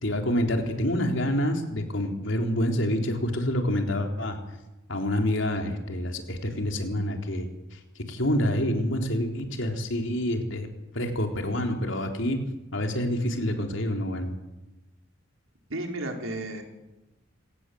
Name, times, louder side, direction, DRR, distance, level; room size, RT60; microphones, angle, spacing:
voice 1, 0.0-4.4 4.9-7.5 8.1-10.7 10.9-12.4 12.7-14.4, left 1 dB, 70° left, 3 dB, 3.7 m, -27 dB
voice 2, 15.7-16.6, right 1 dB, 85° right, 3 dB, 4.3 m, -33 dB
27.0 x 18.0 x 7.9 m, 1.0 s
head